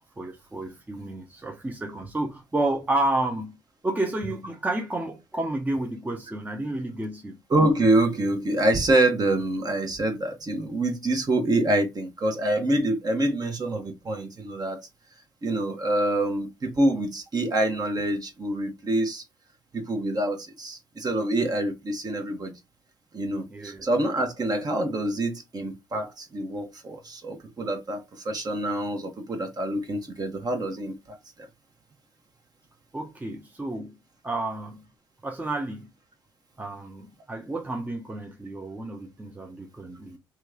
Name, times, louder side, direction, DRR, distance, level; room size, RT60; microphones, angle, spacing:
voice 1, 0.2-3.6 3.8-7.4 23.5-23.9 32.9-34.0 34.2-34.8 35.2-35.9 36.6-40.2, right 2 dB, 15° right, 0.8 m, -31 dB
voice 2, 7.5-14.8 15.4-19.2 19.7-22.5 23.1-31.2, right 1 dB, 40° right, 1.1 m, -26 dB
2.9 x 2.3 x 3.7 m
hypercardioid pair, 55°, 11 cm